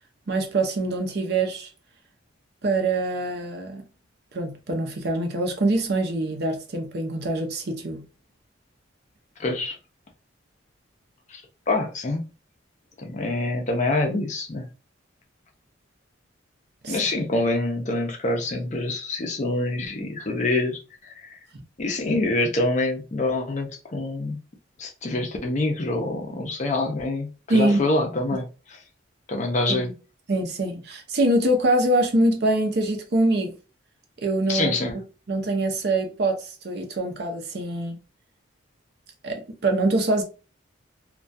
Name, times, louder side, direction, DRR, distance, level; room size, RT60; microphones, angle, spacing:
voice 1, 0.3-1.7 2.6-3.8 4.3-8.0 16.8-17.0 27.5-27.8 29.7-29.9 30.3-33.5 34.2-34.8 35.3-38.0 39.2-40.2, right 2 dB, 55° right, 0.5 m, -24 dB
voice 2, 9.4-9.8 11.3-11.4 11.7-12.3 13.0-14.7 16.9-21.4 21.8-24.4 24.8-28.8 29.3-29.9 34.5-35.0, left 2 dB, 35° left, 0.4 m, -26 dB
2.2 x 2.2 x 2.5 m
head